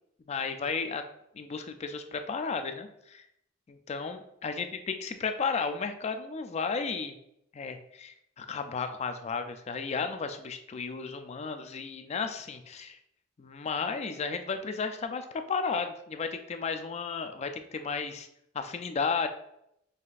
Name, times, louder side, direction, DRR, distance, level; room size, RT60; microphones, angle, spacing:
voice 1, 0.3-1.0 1.3-3.3 3.7-7.1 7.5-13.0 13.4-18.3 18.5-19.3, left 5 dB, 35° left, 8 dB, 0.4 m, -33 dB
5.6 x 3.2 x 2.4 m, 0.78 s
head